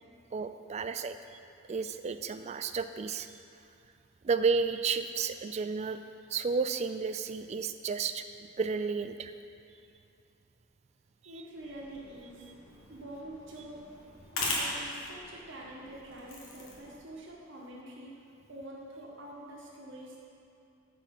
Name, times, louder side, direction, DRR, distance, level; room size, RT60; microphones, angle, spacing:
voice 1, 0.3-1.2 1.7-3.3 4.2-6.0 6.3-8.2 8.6-9.3, right 5 dB, 35° right, 10 dB, 0.3 m, -32 dB
voice 2, 11.2-12.5 12.9-13.9 14.3-18.1 18.5-20.2, right 1 dB, 60° right, -3 dB, 1.5 m, -46 dB
sound 1, 11.5-17.0, left 2 dB, 85° left, 1.6 m, -40 dB
8.6 x 4.8 x 6.0 m, 2.6 s
head